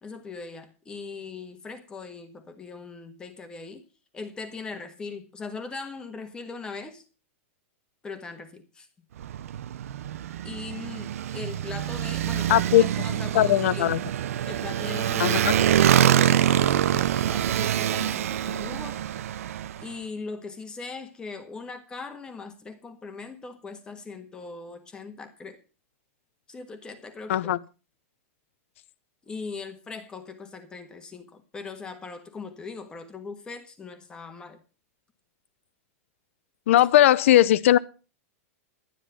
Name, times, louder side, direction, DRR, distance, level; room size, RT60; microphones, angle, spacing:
voice 1, 0.0-3.9 4.1-7.0 8.0-8.9 10.4-14.0 14.4-19.1 19.8-25.6 26.5-27.5 29.2-34.6 36.8-36.9, left 4 dB, 10° left, 1.5 m, -40 dB
Motorcycle, 9.2-19.9, right 11 dB, 85° right, 0.7 m, -25 dB
voice 2, 12.5-12.8 13.3-14.0 15.2-15.5 27.3-27.6 36.7-37.8, left 13 dB, 65° left, 0.7 m, -19 dB
12.0 x 10.5 x 5.6 m
supercardioid pair, 165°, 8 cm